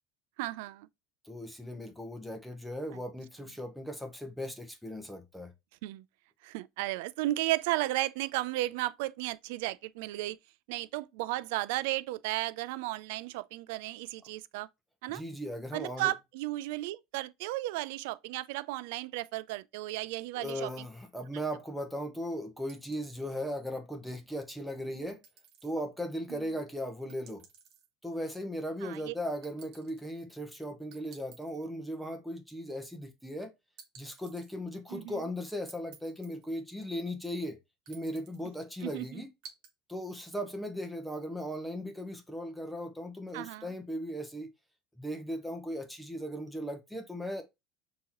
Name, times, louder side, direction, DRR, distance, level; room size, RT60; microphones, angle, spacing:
voice 1, 0.4-0.9 5.8-6.0 6.4-10.4 10.7-14.7 15.0-15.2 15.7-20.9 26.3-26.4 28.8-29.1 34.9-35.2 38.8-39.2 43.3-43.7, right 17 dB, 75° right, 0.3 m, -34 dB
voice 2, 1.2-5.5 15.1-16.1 20.3-25.2 25.6-27.4 28.0-33.5 34.0-37.6 37.9-39.3 39.9-44.5 45.0-47.4, equal, ahead, 0.8 m, -37 dB
sound 1, 22.7-23.7 25.1-25.7 27.1-27.9 29.4-30.1 30.9-31.6 33.8-34.5 35.7-36.5 37.9-38.5 39.4-39.7, right 7 dB, 50° right, 1.6 m, -55 dB
6.2 x 2.8 x 2.9 m
cardioid pair, 160°, 0 cm